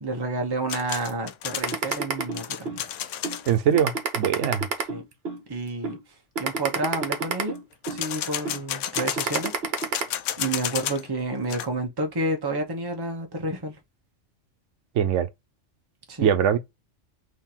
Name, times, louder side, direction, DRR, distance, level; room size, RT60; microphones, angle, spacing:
voice 1, 0.0-2.9 4.9-5.0 5.5-6.0 6.4-7.6 7.9-9.5 9.8-10.0 10.4-13.7 16.1-16.3, right 2 dB, 20° right, 0.9 m, -30 dB
sound 1, 0.7-3.6 7.8-11.1 11.4-11.7, left 10 dB, 80° left, 0.9 m, -32 dB
sound 2, 1.6-2.8 3.2-3.4 3.8-5.4 5.8-6.0 6.3-8.0 8.4-8.6 9.0-10.0, right 4 dB, 60° right, 1.2 m, -28 dB
voice 2, 3.5-4.7 14.9-15.3 16.2-16.6, right 8 dB, 75° right, 1.0 m, -22 dB
3.7 x 3.2 x 4.3 m
omnidirectional pair, 1.2 m